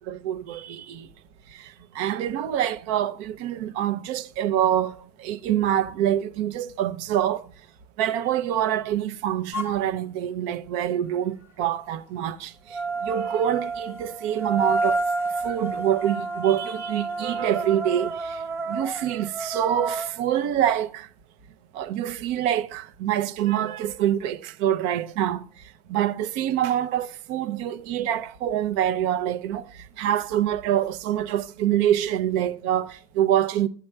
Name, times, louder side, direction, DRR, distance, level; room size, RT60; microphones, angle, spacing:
voice 1, 0.1-1.1 1.5-7.4 8.0-15.0 15.4-21.1 21.7-25.4 25.9-33.7, right 11 dB, 75° right, 0.6 m, -26 dB
sound 1, 9.5-9.8 12.7-20.1, right 3 dB, 10° right, 1.0 m, -29 dB
14.5 x 8.4 x 2.2 m
supercardioid pair, 80°, 20 cm